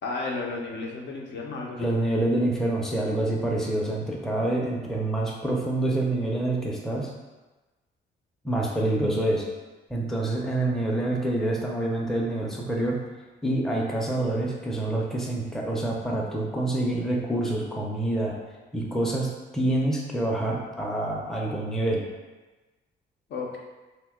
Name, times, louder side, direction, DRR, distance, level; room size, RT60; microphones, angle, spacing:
voice 1, 0.0-1.9 23.3-23.6, left 3 dB, 65° left, -1 dB, 0.6 m, -33 dB
voice 2, 1.8-7.1 8.4-9.4 9.9-13.0 13.4-18.3 18.7-22.0, right 1 dB, ahead, -2 dB, 0.5 m, -27 dB
2.7 x 2.2 x 3.5 m, 1.2 s
cardioid pair, 90°, 20 cm